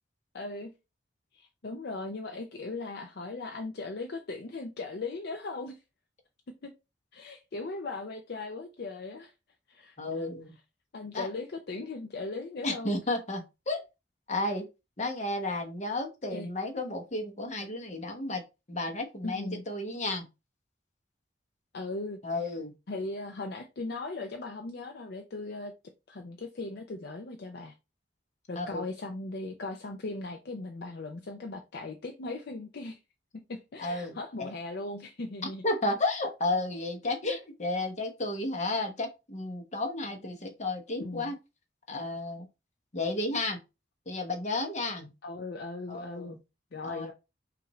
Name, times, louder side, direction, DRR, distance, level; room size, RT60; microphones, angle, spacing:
voice 1, 0.3-0.7 1.3-5.8 6.6-6.7 7.1-9.3 9.7-10.3 10.9-13.0 16.3-16.5 19.2-19.6 21.7-22.2 22.9-25.7 26.1-27.7 28.5-33.0 33.3-35.6 37.3-37.4 41.0-41.3 45.2-46.4 46.7-47.1, left 3 dB, 60° left, 0.5 m, -38 dB
voice 2, 10.0-10.5 11.1-11.3 12.6-13.8 14.3-14.6 15.0-18.4 18.7-20.3 22.2-22.7 28.5-28.8 33.8-34.5 35.4-41.3 41.9-42.5 42.9-43.6 44.1-45.1 45.9-46.4 46.8-47.1, left 2 dB, 40° left, 1.0 m, -32 dB
5.6 x 2.6 x 3.1 m
head